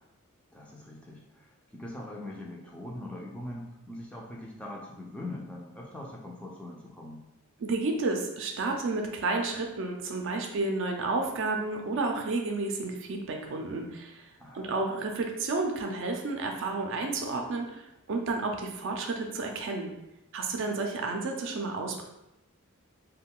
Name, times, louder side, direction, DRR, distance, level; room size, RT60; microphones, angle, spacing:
voice 1, 0.5-7.2 14.4-14.7 20.6-20.8, left 1 dB, 5° left, -3 dB, 0.3 m, -42 dB
voice 2, 7.6-14.2 14.5-17.8 18.1-19.9 20.3-22.0, right 3 dB, 60° right, 2 dB, 0.4 m, -31 dB
2.3 x 2.2 x 3.6 m, 0.92 s
head